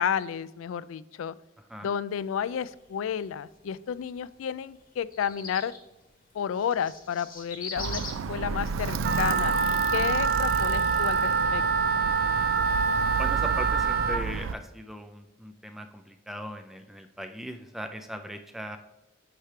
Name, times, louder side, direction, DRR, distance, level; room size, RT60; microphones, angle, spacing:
voice 1, 0.0-1.3 1.8-5.7 6.3-9.5 9.9-11.9, left 8 dB, 85° left, 18 dB, 0.3 m, -31 dB
sound 1, 2.1-13.9, left 3 dB, 45° left, 1.5 m, -47 dB
Alarm, 7.8-14.5, right 5 dB, 85° right, 0.4 m, -32 dB
Wind instrument woodwind instrument, 9.0-14.2, right 5 dB, 55° right, 0.7 m, -25 dB
voice 2, 13.2-18.8, equal, ahead, 7 dB, 0.4 m, -39 dB
8.9 x 3.2 x 5.7 m, 0.99 s
head